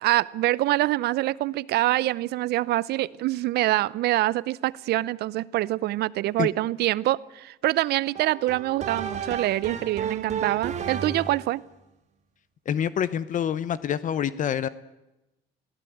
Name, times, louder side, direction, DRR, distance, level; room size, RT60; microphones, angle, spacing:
voice 1, 0.0-11.6, right 16 dB, 75° right, 0.7 m, -25 dB
sound 1, 8.1-11.5, right 7 dB, 45° right, 2.1 m, -33 dB
voice 2, 12.7-14.7, left 9 dB, 50° left, 0.9 m, -26 dB
21.5 x 16.0 x 9.3 m
cardioid pair, 110°, 17 cm